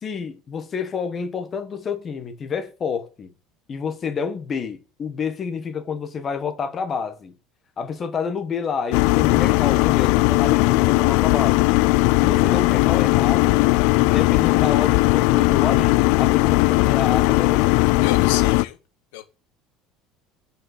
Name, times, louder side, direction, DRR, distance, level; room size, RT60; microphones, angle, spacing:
voice 1, 0.0-3.3 3.7-7.4 7.8-11.7 12.2-13.6 14.0-17.7, left 6 dB, 25° left, 1.3 m, -29 dB
sound 1, 8.9-18.6, left 22 dB, 65° left, 0.4 m, -18 dB
voice 2, 18.0-18.8 19.1-19.3, left 13 dB, 90° left, 1.6 m, -31 dB
6.9 x 5.4 x 6.6 m
cardioid pair, 170°, 0 cm